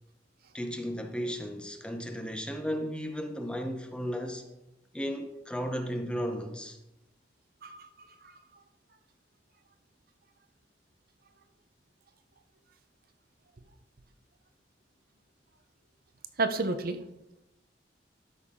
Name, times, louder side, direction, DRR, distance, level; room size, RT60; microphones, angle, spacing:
voice 1, 0.5-4.4 4.9-6.8, equal, 5° left, 0.8 m, -34 dB
voice 2, 7.6-8.6 16.4-17.0, right 3 dB, 55° right, 0.8 m, -32 dB
13.0 x 5.8 x 3.7 m
head